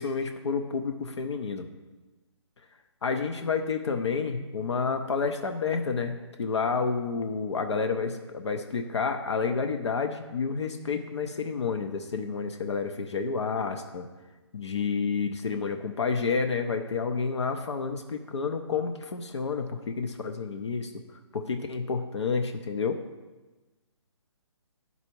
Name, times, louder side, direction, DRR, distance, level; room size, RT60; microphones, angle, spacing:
voice 1, 0.0-1.7 3.0-14.1 14.5-20.9 21.3-23.0, left 5 dB, 70° left, 6 dB, 0.7 m, -30 dB
9.7 x 4.1 x 4.5 m, 1.2 s
hypercardioid pair, 150°, 15 cm